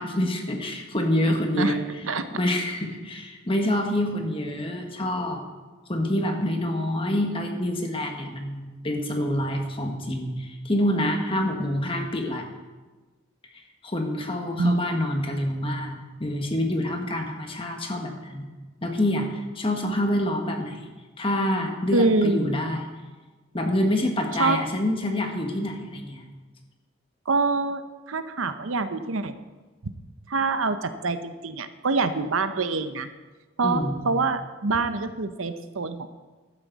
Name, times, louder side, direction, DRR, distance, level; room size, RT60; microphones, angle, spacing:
voice 1, 0.0-1.8 2.3-5.4 5.9-12.5 13.8-18.5 18.8-20.9 21.2-22.9 23.5-26.3 33.6-34.0, left 1 dB, 25° left, 3 dB, 1.6 m, -27 dB
voice 2, 1.3-1.7 2.0-2.3 14.6-14.8 21.9-22.5 24.4-24.6 27.3-29.3 29.8-29.9 30.3-33.1 33.6-36.1, right 3 dB, 80° right, 10 dB, 0.8 m, -25 dB
15.5 x 11.5 x 4.1 m, 1.3 s
head